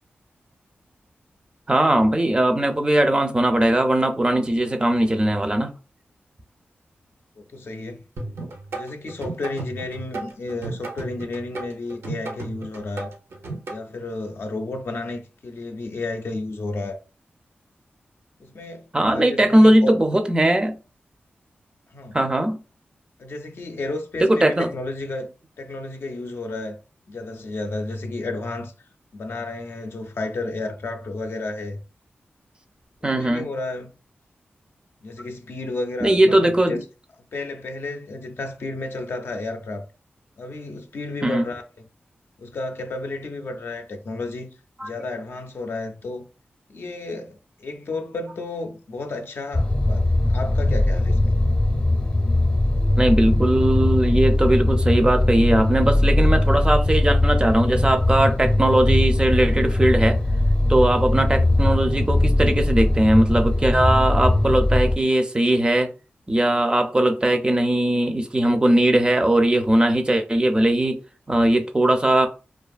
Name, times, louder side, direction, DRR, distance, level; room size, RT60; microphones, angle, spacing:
voice 1, 1.7-5.7 18.9-20.8 22.1-22.6 24.2-24.7 33.0-33.5 36.0-36.8 41.2-41.5 44.8-44.9 53.0-60.2 60.7-65.9 66.3-71.0 71.3-72.3, right 1 dB, 20° right, 0.4 m, -19 dB
voice 2, 7.4-8.1 8.7-13.1 13.7-17.0 18.4-20.0 21.9-22.2 23.2-25.3 25.6-26.8 27.1-28.7 29.1-31.8 33.0-33.9 35.0-36.8 37.3-39.8 40.4-41.9 42.4-44.5 44.8-46.3 46.7-51.4, left 2 dB, 70° left, 0.5 m, -32 dB
sound 1, 8.2-13.8, right 3 dB, 85° right, 0.6 m, -34 dB
sound 2, 49.5-65.0, left 1 dB, 30° left, 0.6 m, -20 dB
2.6 x 2.3 x 2.3 m
cardioid pair, 65°, 4 cm